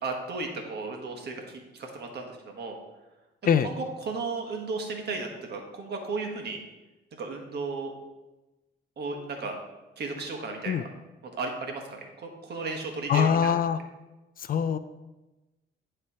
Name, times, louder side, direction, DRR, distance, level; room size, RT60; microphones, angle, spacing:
voice 1, 0.0-1.4 1.7-2.8 3.4-6.6 7.2-7.9 9.0-9.6 10.0-10.9 11.3-13.6, right 3 dB, 55° right, 2 dB, 1.3 m, -34 dB
voice 2, 13.1-13.8 14.5-14.8, left 8 dB, 45° left, 12 dB, 0.4 m, -23 dB
9.7 x 3.3 x 4.2 m, 1.1 s
cardioid pair, 90°, 20 cm